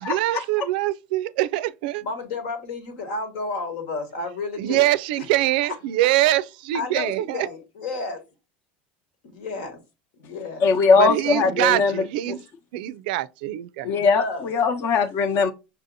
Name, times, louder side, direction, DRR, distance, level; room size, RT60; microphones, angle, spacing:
voice 1, 0.0-2.0 4.6-7.5 11.0-12.4 12.7-13.9, right 15 dB, 75° right, 0.4 m, -24 dB
voice 2, 2.0-4.9 6.7-8.2 9.2-9.8 10.2-10.7 11.3-11.9 13.8-14.5, left 3 dB, 80° left, 1.6 m, -32 dB
voice 3, 10.6-11.9 13.9-15.5, left 5 dB, 50° left, 0.9 m, -20 dB
5.5 x 2.7 x 2.5 m
supercardioid pair, 105°, 5 cm